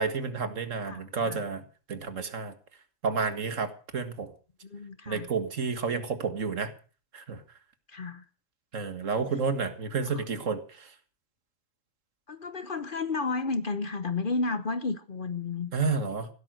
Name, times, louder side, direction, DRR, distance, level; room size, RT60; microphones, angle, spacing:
voice 1, 0.0-1.6 1.9-2.5 3.0-4.3 5.1-6.7 7.1-7.4 8.7-10.6 15.7-16.3, right 5 dB, 65° right, 2.0 m, -30 dB
voice 2, 0.9-1.4 4.7-5.3 7.9-8.2 10.0-10.2 12.3-15.7, left 3 dB, 45° left, 1.0 m, -32 dB
16.5 x 12.0 x 6.4 m
omnidirectional pair, 1.4 m